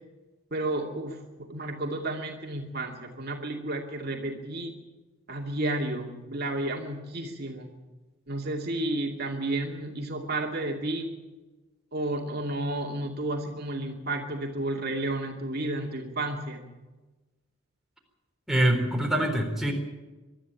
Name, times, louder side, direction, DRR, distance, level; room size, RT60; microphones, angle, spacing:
voice 1, 0.5-4.7 5.3-7.7 8.3-11.1 11.9-16.6, right 2 dB, 50° right, 2 dB, 2.4 m, -32 dB
voice 2, 18.5-19.7, right 1 dB, ahead, 0 dB, 4.0 m, -24 dB
23.5 x 12.5 x 9.0 m, 1.2 s
head